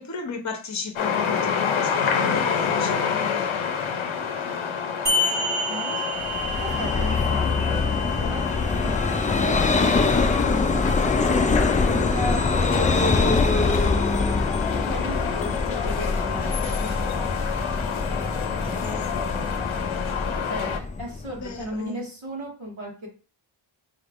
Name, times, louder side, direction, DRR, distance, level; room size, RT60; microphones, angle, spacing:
voice 1, 0.0-3.5 18.6-19.5 21.4-22.1, left 5 dB, 35° left, 5 dB, 0.7 m, -35 dB
sound 1, 1.0-20.8, left 7 dB, 70° left, 0.6 m, -28 dB
sound 2, 5.1-10.1, left 1 dB, 35° right, 1.1 m, -30 dB
voice 2, 5.7-6.2 6.6-8.4 8.7-11.3 11.9-13.4 14.9-17.8 20.5-23.1, equal, 75° right, -2 dB, 1.7 m, -36 dB
Vehicle, 6.2-21.7, left 3 dB, 20° left, 0.3 m, -24 dB
4.4 x 3.2 x 2.5 m, 0.35 s
wide cardioid pair, 55°, 48 cm